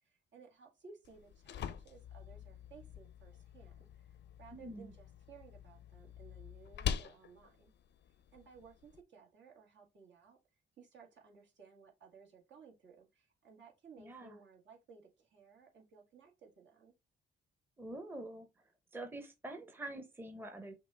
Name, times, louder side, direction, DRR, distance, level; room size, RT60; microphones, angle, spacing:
voice 1, 0.0-7.7 8.3-10.4 10.8-16.9, right 5 dB, 65° right, 1.8 m, -59 dB
sound 1, 1.0-9.0, left 9 dB, 65° left, 0.6 m, -45 dB
voice 2, 4.5-4.9 14.0-14.4 17.8-18.5 18.9-20.7, right 1 dB, 10° right, 0.8 m, -46 dB
5.9 x 2.5 x 3.4 m
cardioid pair, 90°, 20 cm